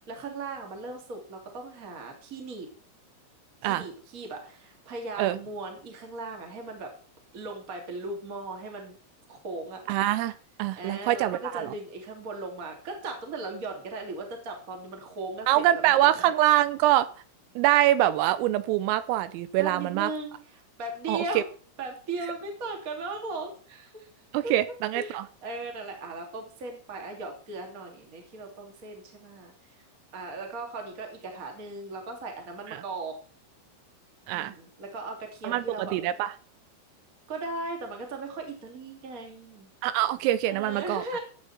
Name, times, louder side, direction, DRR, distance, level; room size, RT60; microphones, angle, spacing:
voice 1, 0.0-2.7 3.6-6.9 7.3-9.0 9.3-9.8 10.8-16.3 19.6-21.5 21.8-24.1 24.4-24.5 24.9-29.5 30.1-33.2 34.3-36.0 37.3-39.7 40.5-41.2, right 3 dB, 25° right, 2 dB, 2.0 m, -37 dB
voice 2, 9.9-10.3 10.6-11.7 15.5-17.1 17.6-20.1 21.1-21.4 24.3-25.3 34.3-34.5 35.4-36.3 39.8-41.0, right 14 dB, 85° right, 14 dB, 3.3 m, -24 dB
14.0 x 8.6 x 4.3 m, 0.40 s
omnidirectional pair, 6.0 m